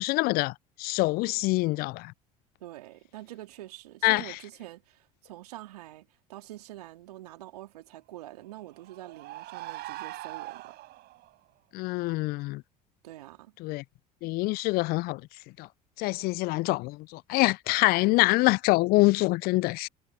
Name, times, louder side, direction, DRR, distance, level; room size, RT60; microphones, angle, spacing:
voice 1, 0.0-2.1 4.0-4.4 11.7-12.6 13.6-13.8 14.2-15.2 15.6-15.7 16.0-19.9, left 22 dB, 50° left, 0.4 m, -25 dB
voice 2, 2.6-10.7 13.0-13.5, right 15 dB, 75° right, 3.4 m, -45 dB
sound 1, 8.4-11.4, right 17 dB, 55° right, 5.8 m, -42 dB
hypercardioid pair, 70°, 20 cm